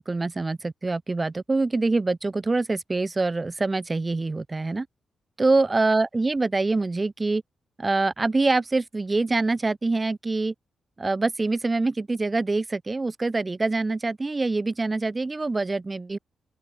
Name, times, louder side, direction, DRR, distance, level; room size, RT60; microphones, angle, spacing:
voice 1, 0.0-4.9 5.4-7.4 7.8-10.5 11.0-16.2, right 3 dB, 30° right, 1.2 m, -25 dB
open air
cardioid pair, 60°, 0 cm